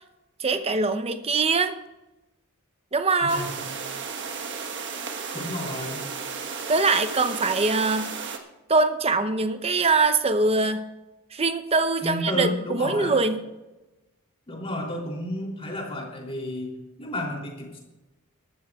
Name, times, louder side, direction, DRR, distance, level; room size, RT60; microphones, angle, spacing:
voice 1, 0.4-1.8 2.9-3.5 6.7-8.1 8.7-10.9 11.3-13.4, right 3 dB, 30° right, 9 dB, 0.8 m, -23 dB
voice 2, 3.2-3.6 5.3-6.0 12.0-13.2 14.5-17.8, left 1 dB, 25° left, -1 dB, 3.2 m, -32 dB
sound 1, 3.3-8.4, right 5 dB, 55° right, 1.3 m, -34 dB
21.5 x 13.0 x 2.4 m, 1.0 s
head